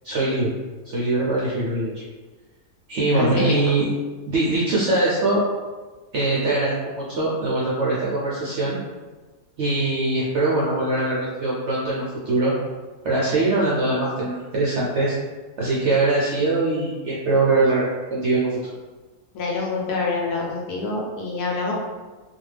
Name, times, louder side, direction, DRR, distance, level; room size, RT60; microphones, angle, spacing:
voice 1, 0.0-0.5 0.8-2.1 2.9-3.9 4.3-5.4 6.1-8.8 9.6-12.5 13.0-15.1 15.6-18.7, right 2 dB, 70° right, -6 dB, 0.6 m, -22 dB
voice 2, 3.1-3.7 19.3-21.7, left 3 dB, 75° left, -2 dB, 1.1 m, -26 dB
2.6 x 2.3 x 3.2 m, 1.3 s
omnidirectional pair, 1.7 m